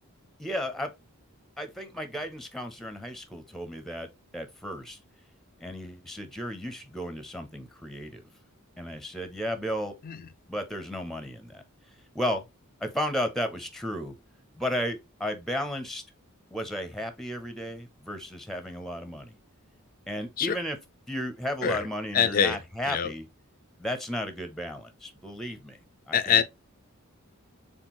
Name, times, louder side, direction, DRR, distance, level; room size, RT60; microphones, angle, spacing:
voice 1, 0.4-0.9 1.6-4.1 4.3-5.0 5.6-8.2 8.8-9.9 10.5-11.6 12.1-12.4 12.8-14.1 14.6-16.0 16.5-19.3 20.1-20.8 21.1-23.3 23.8-25.8 26.1-26.4, equal, ahead, 0.6 m, -34 dB
voice 2, 22.1-22.6 22.9-23.1 26.1-26.4, left 8 dB, 40° left, 0.4 m, -24 dB
4.3 x 3.7 x 3.0 m
head